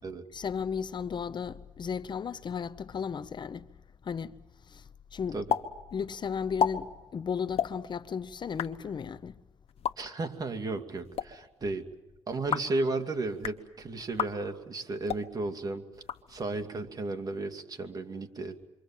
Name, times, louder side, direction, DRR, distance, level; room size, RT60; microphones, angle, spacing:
voice 1, 0.3-3.7 4.0-4.3 4.7-5.4 5.9-9.3, left 6 dB, 45° left, 0.8 m, -35 dB
sound 1, 5.5-5.6 5.9-6.0 6.4-6.7 7.5-7.7 8.4-8.7 9.7-9.9 10.9-11.3 12.3-12.7 13.3-13.6 14.1-14.3 15.0-15.2 15.9-16.6, left 8 dB, 70° left, 1.5 m, -31 dB
voice 2, 10.0-11.9 12.3-15.9 16.3-18.6, right 2 dB, 35° right, 2.5 m, -34 dB
28.0 x 24.0 x 7.4 m
cardioid pair, 90°, 11 cm